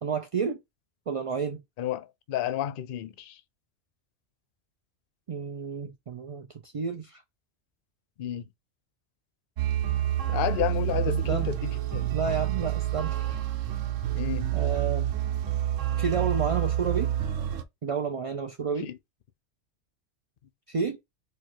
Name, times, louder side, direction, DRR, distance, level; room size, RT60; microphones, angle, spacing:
voice 1, 0.0-0.6 1.1-1.6 5.3-7.2 11.1-11.5 12.1-13.3 14.5-15.1 15.9-17.1 17.8-18.9 20.7-21.0, right 6 dB, 60° right, 0.3 m, -30 dB
voice 2, 1.8-3.4 8.2-8.5 10.3-12.1 14.1-14.5 18.8-19.0, left 11 dB, 55° left, 0.7 m, -31 dB
sound 1, 9.6-17.6, right 12 dB, 90° right, 1.1 m, -28 dB
4.5 x 2.3 x 4.6 m
omnidirectional pair, 1.3 m